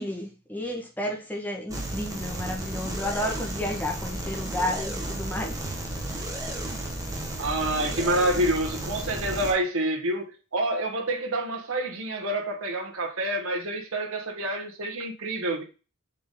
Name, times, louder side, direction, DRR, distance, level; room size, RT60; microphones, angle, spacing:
voice 1, 0.0-5.6, left 1 dB, 10° left, 1.6 m, -32 dB
sound 1, 1.7-9.5, right 1 dB, 15° right, 1.6 m, -33 dB
voice 2, 7.4-15.6, right 1 dB, 70° right, 1.7 m, -28 dB
7.4 x 4.2 x 3.9 m
head